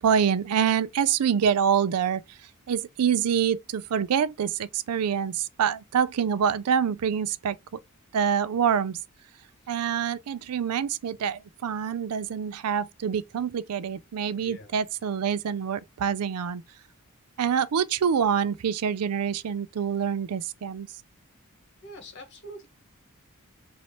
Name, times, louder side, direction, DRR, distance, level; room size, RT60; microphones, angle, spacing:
voice 1, 0.0-2.4 2.7-7.8 8.1-9.0 9.7-16.6 17.4-20.9, right 7 dB, 80° right, 0.4 m, -26 dB
voice 2, 14.4-14.7 21.8-22.7, equal, 55° left, 1.6 m, -44 dB
3.1 x 2.7 x 4.3 m
head